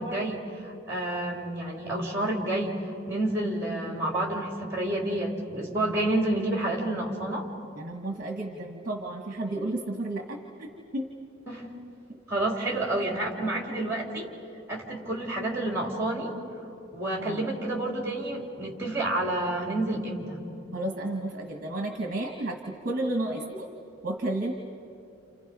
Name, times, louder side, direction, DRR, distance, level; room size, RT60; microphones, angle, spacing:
voice 1, 0.0-2.8 3.1-7.5 11.5-11.7 12.3-14.3 14.7-16.3 16.9-20.4, right 1 dB, 15° right, -1 dB, 3.8 m, -29 dB
voice 2, 7.7-11.1 12.1-12.2 12.6-12.8 17.2-17.5 20.7-23.7 24.0-24.5, right 1 dB, 40° right, 2 dB, 1.5 m, -32 dB
29.5 x 29.5 x 5.5 m, 2.7 s
head